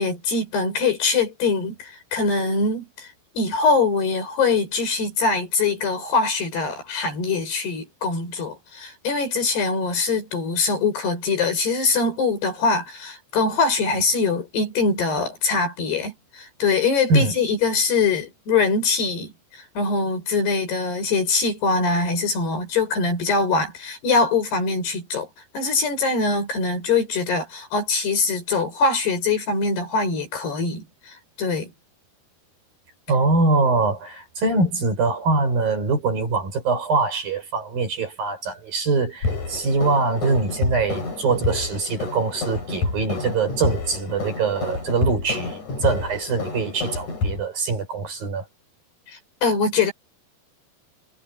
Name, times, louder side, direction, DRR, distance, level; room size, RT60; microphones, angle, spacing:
voice 1, 0.0-3.1 3.4-25.3 25.5-31.7 49.1-49.9, left 4 dB, 65° left, 8.6 m, -23 dB
voice 2, 33.1-48.4, right 3 dB, 55° right, 8.0 m, -23 dB
sound 1, 39.2-47.4, left 3 dB, 40° left, 8.3 m, -29 dB
omnidirectional pair, 5.0 m